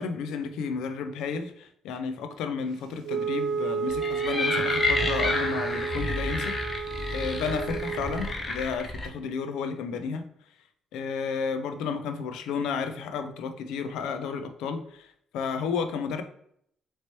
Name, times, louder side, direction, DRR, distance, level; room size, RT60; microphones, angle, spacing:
voice 1, 0.0-10.2 10.9-16.2, left 5 dB, 90° left, 8 dB, 0.4 m, -32 dB
Wind instrument woodwind instrument, 3.0-8.3, right 5 dB, 85° right, 0.4 m, -31 dB
sound 1, 3.9-9.1, left 2 dB, 30° left, 0.7 m, -30 dB
4.2 x 3.0 x 2.9 m, 0.69 s
cardioid pair, 90°, 0 cm